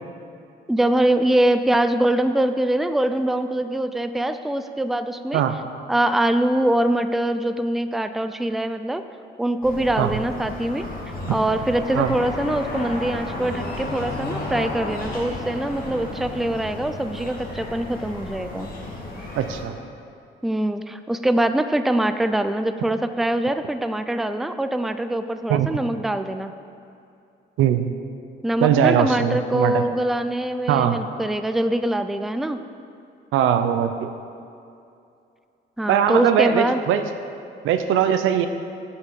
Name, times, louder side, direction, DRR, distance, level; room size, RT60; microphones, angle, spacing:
voice 1, 0.7-5.4 5.9-9.0 9.4-10.9 11.3-18.7 20.4-26.5 28.4-32.6 35.8-36.8, right 1 dB, ahead, 9 dB, 0.4 m, -23 dB
sound 1, 9.6-19.6, left 2 dB, 45° left, 2.2 m, -33 dB
voice 2, 19.3-19.7 25.5-25.7 27.6-27.9 28.6-29.8 30.7-31.0 33.3-34.1 35.9-37.0 37.6-38.5, right 9 dB, 85° right, 9 dB, 0.6 m, -20 dB
8.0 x 5.8 x 6.9 m, 2.5 s
cardioid pair, 90°, 20 cm